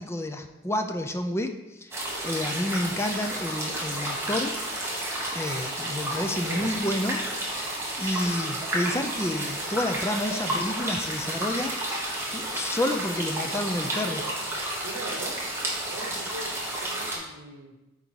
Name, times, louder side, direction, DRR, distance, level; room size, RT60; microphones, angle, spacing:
voice 1, 0.0-4.6 5.3-7.3 8.0-11.8 12.3-14.3, left 1 dB, 10° left, 6 dB, 0.4 m, -30 dB
sound 1, 1.9-17.2, right 1 dB, 10° right, 1.3 m, -31 dB
voice 2, 6.1-6.7 14.8-15.4 15.9-16.5 16.8-17.7, right 2 dB, 70° right, 3 dB, 1.1 m, -40 dB
8.9 x 4.0 x 4.6 m, 1.0 s
head